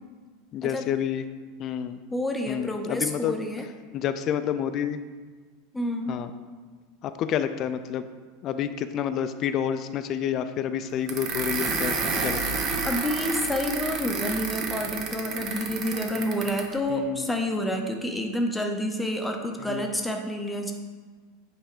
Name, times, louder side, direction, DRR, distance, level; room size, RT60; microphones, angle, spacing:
voice 1, 0.5-1.2 1.6-2.0 2.5-3.3 3.9-5.0 6.1-6.3 7.0-8.1 8.4-12.6 16.9-17.3 19.6-19.9, left 9 dB, 40° left, 11 dB, 0.3 m, -29 dB
voice 2, 2.1-3.7 5.7-6.2 12.8-20.7, equal, 5° left, 3 dB, 0.7 m, -29 dB
sound 1, 11.1-16.7, right 4 dB, 40° right, 0.9 m, -30 dB
8.8 x 3.4 x 4.9 m, 1.4 s
supercardioid pair, 130°, 0 cm